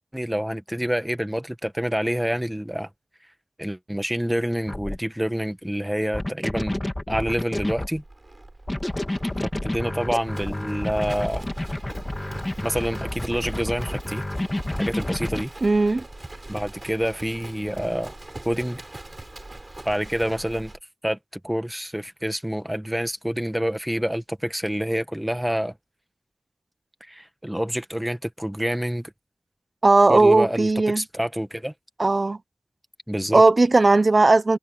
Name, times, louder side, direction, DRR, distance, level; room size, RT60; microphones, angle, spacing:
voice 1, 0.1-2.9 3.6-8.0 9.4-11.4 12.6-14.3 14.8-15.5 16.5-18.1 18.4-18.8 19.8-20.7 21.0-21.2 21.4-25.7 27.1-29.1 30.1-31.7 33.1-33.4, equal, 5° right, 1.6 m, -27 dB
sound 1, 4.5-5.0 6.1-8.0 8.7-15.4, left 1 dB, 25° left, 2.9 m, -29 dB
Livestock farm animals working animals, 7.8-20.8, right 2 dB, 35° right, 5.8 m, -42 dB
voice 2, 15.6-16.0 29.8-31.0 32.0-32.4 33.3-34.6, right 2 dB, 50° right, 0.7 m, -17 dB
wide cardioid pair, 70°, 0 cm